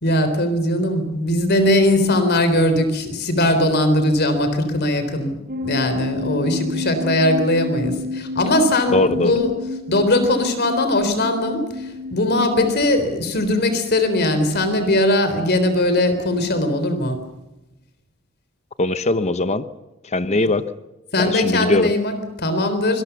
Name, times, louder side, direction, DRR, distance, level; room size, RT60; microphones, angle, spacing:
voice 1, 0.0-9.5 9.9-17.2 20.4-20.5 21.1-23.0, left 1 dB, 55° left, 9 dB, 3.7 m, -20 dB
sound 1, 5.5-12.9, left 2 dB, 50° right, 5.8 m, -30 dB
voice 2, 8.9-9.4 18.8-19.7 20.0-20.7 21.2-21.9, left 2 dB, 35° left, 12 dB, 0.9 m, -20 dB
25.0 x 21.5 x 7.0 m, 1.0 s
head